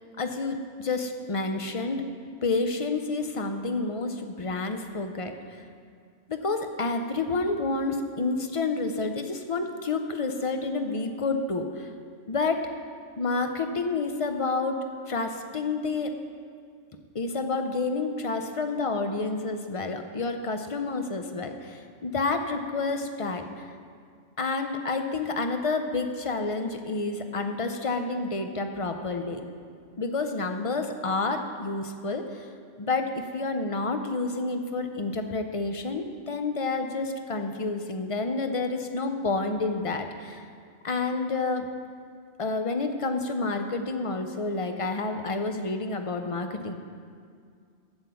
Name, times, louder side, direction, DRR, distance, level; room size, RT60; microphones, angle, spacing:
voice 1, 0.2-2.0 2.4-5.6 6.3-11.9 12.3-12.6 13.2-14.8 15.0-16.1 17.1-23.5 24.4-29.4 30.0-32.5 32.8-40.5 40.8-41.7 42.4-46.7, left 3 dB, 35° left, 6 dB, 0.5 m, -29 dB
8.0 x 7.8 x 7.0 m, 2.2 s
omnidirectional pair, 1.2 m